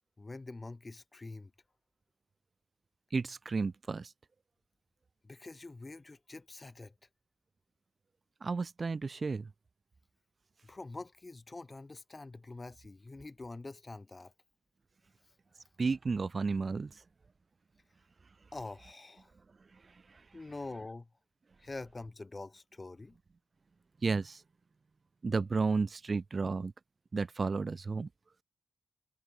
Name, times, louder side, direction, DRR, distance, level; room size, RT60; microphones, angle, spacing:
voice 1, 0.2-1.5 5.2-6.9 10.6-14.3 18.5-19.3 20.3-21.1 21.6-23.2, left 3 dB, 30° left, 6.5 m, -45 dB
voice 2, 3.1-4.1 8.4-9.5 15.8-17.0 20.1-20.2 24.0-24.4 25.2-26.7 27.1-28.1, right 4 dB, 45° right, 1.5 m, -32 dB
cardioid pair, 70°, 0 cm